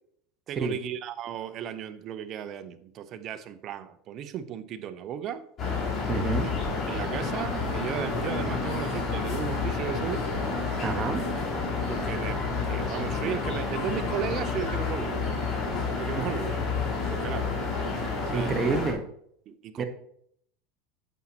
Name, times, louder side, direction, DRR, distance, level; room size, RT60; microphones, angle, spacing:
voice 1, 0.5-5.4 6.3-6.5 6.9-10.3 10.6-10.8 11.9-15.3 16.0-16.6 17.1-17.5 18.3-18.6 19.5-19.8, right 9 dB, 45° right, 12 dB, 0.8 m, -35 dB
sound 1, 5.6-18.9, left 4 dB, 35° left, 3.7 m, -30 dB
voice 2, 6.1-6.5 10.8-11.2 16.2-16.3 18.3-19.1 19.8-19.9, right 4 dB, 30° right, 6 dB, 1.2 m, -28 dB
9.2 x 7.3 x 2.9 m, 0.68 s
supercardioid pair, 115°, 0 cm